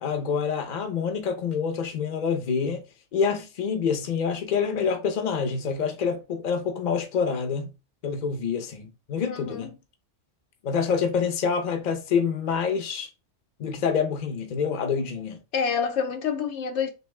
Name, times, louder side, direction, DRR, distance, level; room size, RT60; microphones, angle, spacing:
voice 1, 0.0-2.8 3.1-7.7 8.0-9.7 10.6-13.1 13.6-15.4, left 6 dB, 45° left, 0.7 m, -27 dB
voice 2, 9.3-9.7 15.5-16.9, left 6 dB, 75° left, 0.9 m, -27 dB
3.3 x 3.0 x 3.2 m
omnidirectional pair, 1.3 m